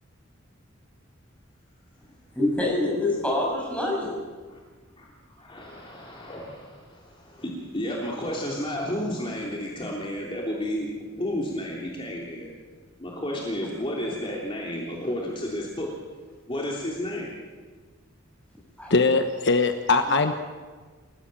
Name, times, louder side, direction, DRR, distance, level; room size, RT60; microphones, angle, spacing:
voice 1, 2.3-4.2 18.8-18.9, left 1 dB, 5° left, -2 dB, 7.6 m, -26 dB
voice 2, 5.4-12.5 13.0-15.9 16.5-17.3, left 1 dB, 25° left, -2 dB, 3.2 m, -32 dB
voice 3, 18.9-20.4, left 3 dB, 60° left, 7 dB, 1.2 m, -21 dB
28.5 x 16.5 x 7.7 m, 1.5 s
head